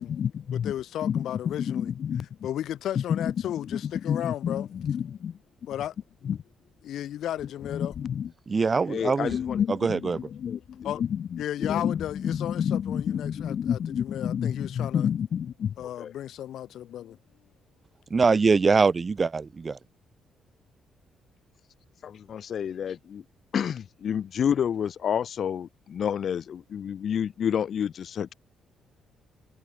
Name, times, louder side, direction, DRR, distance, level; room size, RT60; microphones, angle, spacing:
voice 1, 0.0-0.7 1.0-2.3 3.0-3.3 3.7-5.4 6.2-6.4 7.7-8.3 8.9-16.1 22.0-23.2 23.5-28.3, left 8 dB, 60° left, 2.3 m, -29 dB
voice 2, 0.5-1.9 2.4-4.7 5.7-5.9 6.8-7.9 10.8-11.0 11.4-15.1 15.8-17.2, left 11 dB, 75° left, 3.7 m, -34 dB
voice 3, 8.5-9.4 9.8-10.2 18.1-19.8, right 4 dB, 35° right, 0.5 m, -23 dB
cardioid pair, 90°, 0 cm